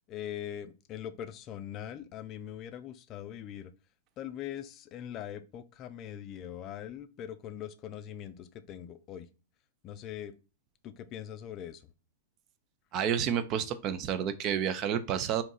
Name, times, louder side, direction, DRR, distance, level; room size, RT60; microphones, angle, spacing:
voice 1, 0.1-3.7 4.2-9.3 9.8-10.3 10.8-11.8, left 10 dB, 35° left, 11 dB, 0.4 m, -41 dB
voice 2, 12.9-15.4, right 8 dB, 40° right, 11 dB, 0.5 m, -30 dB
3.5 x 2.8 x 4.0 m, 0.32 s
hypercardioid pair, 105°, 0 cm